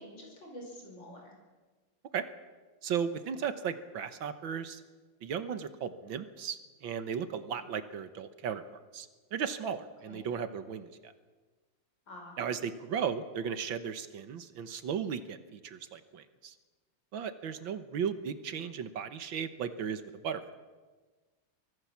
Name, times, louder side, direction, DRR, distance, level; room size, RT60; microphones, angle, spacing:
voice 1, 0.0-1.3 7.4-7.7 10.1-10.3 12.1-12.4, equal, 60° left, 1 dB, 6.0 m, -48 dB
voice 2, 2.8-4.8 5.2-8.6 8.9-11.1 12.4-16.5 17.1-20.4, right 7 dB, 70° right, 11 dB, 1.9 m, -36 dB
24.5 x 18.0 x 7.2 m, 1.3 s
omnidirectional pair, 2.2 m